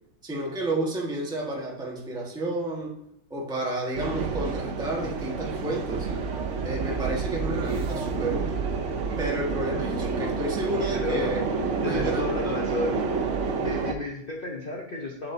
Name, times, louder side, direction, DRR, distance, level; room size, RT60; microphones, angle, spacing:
voice 1, 0.2-2.9 3.3-6.1 6.6-8.7 9.2-11.5 11.7-12.8, right 1 dB, ahead, -3 dB, 1.3 m, -31 dB
sound 1, 3.9-13.9, right 4 dB, 60° right, 0.7 m, -29 dB
voice 2, 10.9-11.3 11.8-13.2 13.6-15.3, left 2 dB, 40° left, -1 dB, 0.8 m, -32 dB
8.6 x 8.6 x 2.7 m, 0.77 s
omnidirectional pair, 2.1 m